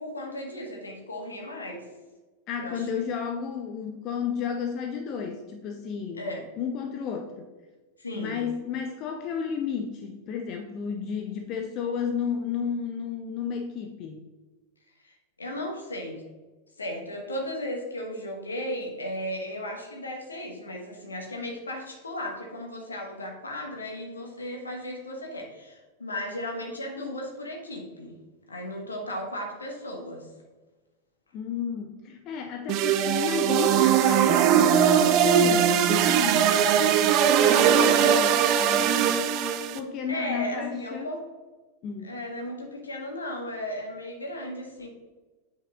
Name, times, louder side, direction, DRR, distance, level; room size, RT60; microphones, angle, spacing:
voice 1, 0.0-1.9 2.6-2.9 6.2-6.5 8.0-8.4 15.0-16.2 16.8-28.2 28.5-30.3 40.1-41.2 42.0-44.9, left 1 dB, 75° left, 2 dB, 1.4 m, -35 dB
voice 2, 2.5-6.2 6.6-7.5 8.1-14.2 31.3-39.2 39.7-41.1 41.8-42.1, left 7 dB, 35° left, 4 dB, 0.6 m, -32 dB
sound 1, 32.7-39.8, right 8 dB, 40° right, 0.5 m, -20 dB
8.8 x 5.5 x 2.4 m, 1.3 s
figure-of-eight pair, 90°, 0 cm